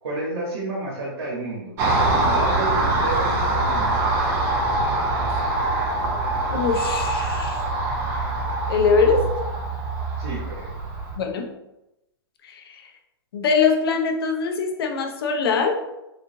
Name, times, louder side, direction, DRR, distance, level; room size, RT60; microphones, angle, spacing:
voice 1, 0.0-4.0 10.2-10.7, right 2 dB, 85° right, -4 dB, 1.3 m, -31 dB
Car passing by, 1.8-11.2, right 2 dB, 20° right, 0.4 m, -24 dB
voice 2, 6.5-7.6 8.7-9.3 11.2-11.5 12.5-12.8 13.3-15.7, left 5 dB, 60° left, 3 dB, 0.7 m, -22 dB
3.9 x 3.1 x 2.6 m, 0.91 s
hypercardioid pair, 165°, 14 cm